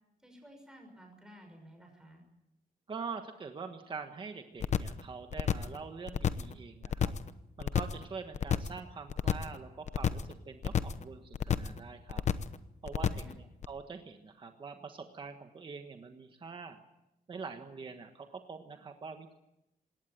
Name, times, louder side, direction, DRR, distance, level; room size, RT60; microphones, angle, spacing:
voice 1, 0.2-2.2 13.0-13.4, equal, 5° right, 2 dB, 6.1 m, -54 dB
voice 2, 2.9-7.1 7.6-12.2 12.8-16.8 17.3-19.3, right 5 dB, 35° right, 6 dB, 1.4 m, -44 dB
sound 1, 4.6-5.0 5.3-5.8 6.1-6.5 6.8-7.3 7.6-8.0 8.3-8.8 9.1-9.6 9.9-10.3 10.6-11.0 11.3-11.8 12.1-12.6 12.9-13.3 13.6-13.7, left 8 dB, 50° left, 0.9 m, -30 dB
19.5 x 18.0 x 9.0 m, 0.86 s
wide cardioid pair, 160°, 15 cm